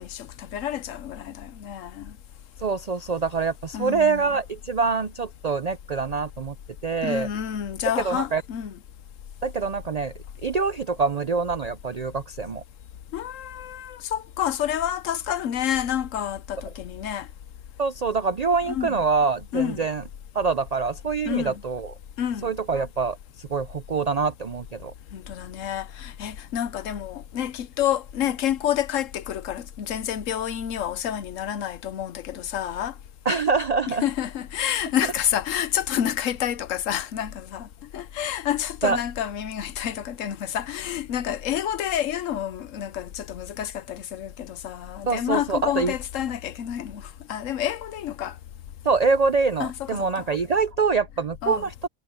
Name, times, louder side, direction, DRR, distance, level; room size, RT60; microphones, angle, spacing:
voice 1, 0.0-2.1 3.7-4.4 7.0-8.8 13.1-17.3 18.7-19.0 19.5-19.8 21.3-21.6 22.2-22.5 25.1-32.9 33.9-37.7 37.9-47.0 47.3-48.3 49.6-50.0 51.4-51.7, left 10 dB, 65° left, 1.1 m, -29 dB
voice 2, 2.6-6.5 6.8-7.3 8.0-8.4 9.4-10.1 10.4-12.6 17.8-20.0 20.3-21.9 22.4-24.9 33.3-34.0 38.8-39.0 45.1-45.9 48.8-51.7, right 4 dB, 85° right, 0.3 m, -25 dB
omnidirectional pair, 1.5 m